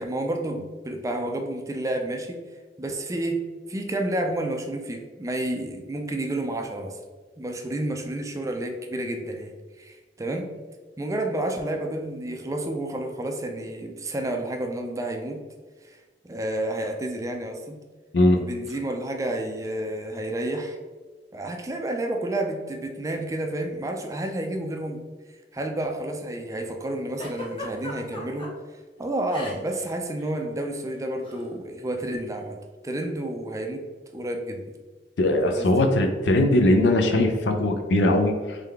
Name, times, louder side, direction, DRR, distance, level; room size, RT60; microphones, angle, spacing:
voice 1, 0.0-2.4 2.8-3.4 3.7-7.0 7.4-9.5 9.8-10.5 11.0-15.4 15.8-16.0 16.2-17.8 18.4-20.8 21.3-25.0 25.5-28.5 29.0-32.6 32.8-33.8 34.1-34.8 35.4-35.9, right 1 dB, 20° right, 4 dB, 0.4 m, -30 dB
Giggle, 27.2-28.5 29.3-29.8 30.1-30.3 31.2-31.5, left 2 dB, 30° left, 0.9 m, -36 dB
voice 2, 35.2-38.6, left 1 dB, 70° left, 5 dB, 0.5 m, -20 dB
3.7 x 3.3 x 3.4 m, 1.3 s
head